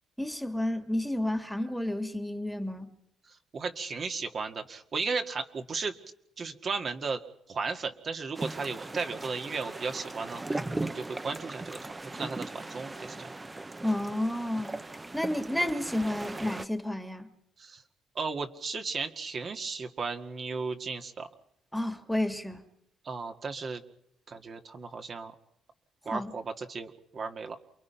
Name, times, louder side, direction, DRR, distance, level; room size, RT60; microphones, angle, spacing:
voice 1, 0.2-2.9 13.8-14.8 15.1-17.3 21.7-22.6 26.1-26.3, left 1 dB, 5° left, 1.9 m, -31 dB
voice 2, 3.5-5.9 6.4-7.2 7.5-11.8 12.1-13.3 17.6-17.8 18.2-21.3 23.0-23.8 24.3-25.3 26.1-27.6, right 4 dB, 50° right, 2.0 m, -35 dB
sound 1, 8.3-16.7, right 2 dB, 20° right, 1.0 m, -38 dB
28.5 x 22.0 x 5.8 m
cardioid pair, 90°, 0 cm